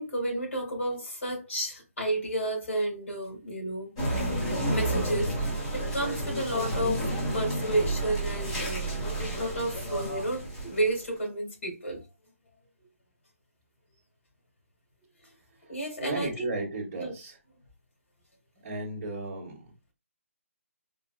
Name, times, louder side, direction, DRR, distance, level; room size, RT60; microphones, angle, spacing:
voice 1, 0.0-3.9 4.7-5.3 5.7-7.1 7.3-9.1 9.3-12.0 15.7-16.5 17.0-17.1, right 1 dB, 65° left, 2.0 m, -31 dB
sound 1, 4.0-11.0, right 1 dB, 20° left, 1.1 m, -31 dB
voice 2, 16.0-17.4 18.6-19.7, right 2 dB, 20° right, 0.8 m, -35 dB
3.8 x 2.4 x 2.3 m
hypercardioid pair, 175°, 8 cm